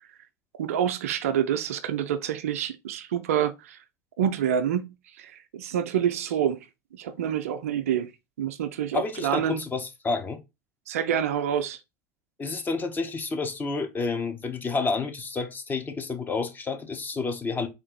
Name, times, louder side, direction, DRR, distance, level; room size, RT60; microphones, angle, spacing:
voice 1, 0.6-3.8 4.2-4.9 5.2-6.6 6.9-8.1 8.4-9.6 10.9-11.8, right 9 dB, 65° right, 0.4 m, -27 dB
voice 2, 8.9-10.4 12.4-17.7, left 4 dB, 20° left, 0.8 m, -30 dB
3.7 x 2.5 x 3.9 m
figure-of-eight pair, 70°, 8 cm